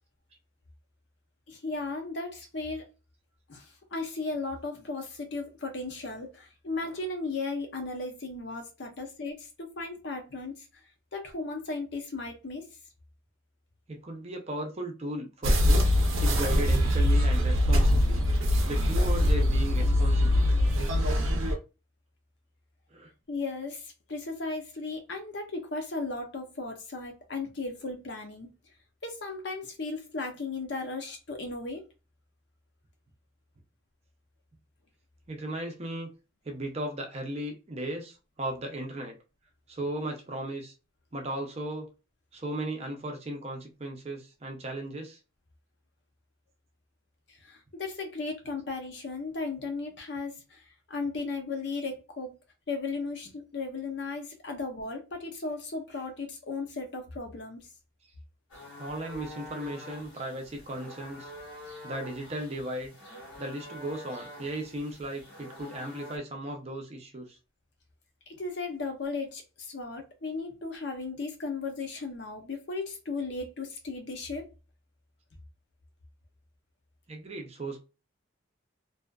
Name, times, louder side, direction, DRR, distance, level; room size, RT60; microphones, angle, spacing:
voice 1, 1.5-2.8 3.5-10.7 11.1-12.7 23.3-28.5 29.0-31.8 47.3-52.4 52.7-57.7 68.3-74.5, left 3 dB, 60° left, 0.7 m, -36 dB
voice 2, 13.9-15.8 16.2-18.2 18.7-20.5 22.9-23.1 35.3-36.1 36.4-39.1 39.7-40.7 41.1-41.9 42.3-45.2 58.8-61.3 61.8-62.9 63.4-67.4 77.1-77.8, right 1 dB, 30° right, 0.5 m, -36 dB
sound 1, 15.4-21.5, left 1 dB, 90° right, 0.6 m, -23 dB
sound 2, 58.5-66.2, left 1 dB, 90° left, 1.3 m, -46 dB
2.6 x 2.4 x 2.3 m
head